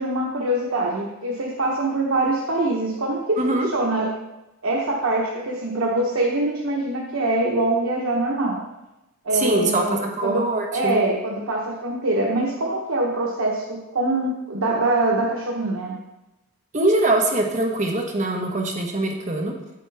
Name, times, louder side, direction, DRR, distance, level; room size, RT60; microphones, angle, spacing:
voice 1, 0.0-4.1 4.6-8.6 9.2-10.5 10.7-15.9, right 2 dB, 85° right, -3 dB, 1.1 m, -24 dB
voice 2, 3.4-3.7 9.3-11.0 16.7-19.5, right 2 dB, 35° right, 0 dB, 1.2 m, -23 dB
8.2 x 7.9 x 3.4 m, 0.97 s
head